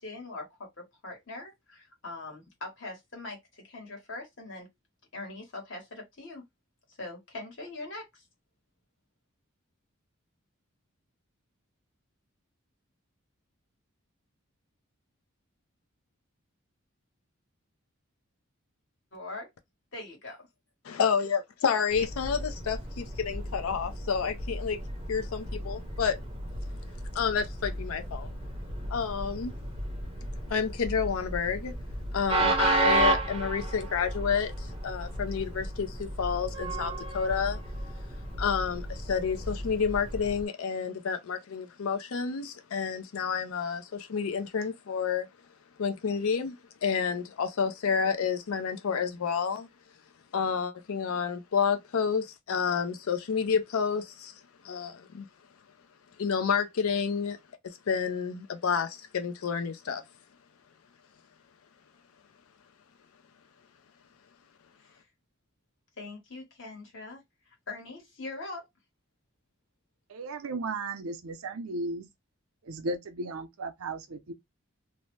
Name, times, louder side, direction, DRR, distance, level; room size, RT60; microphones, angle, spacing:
voice 1, 0.0-4.7 5.1-6.4 7.0-8.2 19.1-19.5 19.9-20.5 64.8-65.0 66.0-67.2 67.7-68.6, left 2 dB, 60° left, 1.3 m, -42 dB
voice 2, 20.8-24.8 25.1-26.2 27.1-28.4 28.9-29.5 30.5-31.7 32.1-37.6 38.4-45.3 45.8-49.7 50.3-54.4 54.6-55.3 56.2-57.4 57.6-60.0, left 6 dB, 85° left, 0.5 m, -29 dB
Train, 21.9-40.4, right 2 dB, 25° right, 0.5 m, -33 dB
voice 3, 70.1-72.1 72.6-74.3, right 2 dB, 85° right, 0.6 m, -35 dB
2.6 x 2.1 x 3.1 m
head